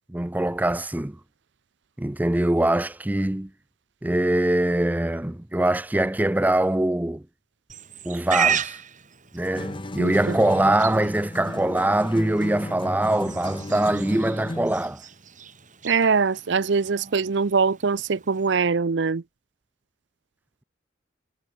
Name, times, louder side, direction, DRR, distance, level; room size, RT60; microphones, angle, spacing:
voice 1, 0.1-1.2 2.0-3.5 4.0-7.2 8.0-8.8 9.3-15.0, right 1 dB, 10° right, 0.5 m, -23 dB
Livestock farm animals working animals, 7.7-18.6, right 8 dB, 40° right, 5.0 m, -35 dB
sound 1, 9.6-14.9, left 1 dB, 25° left, 0.9 m, -34 dB
voice 2, 10.0-10.4 15.8-19.2, right 5 dB, 65° right, 0.6 m, -23 dB
head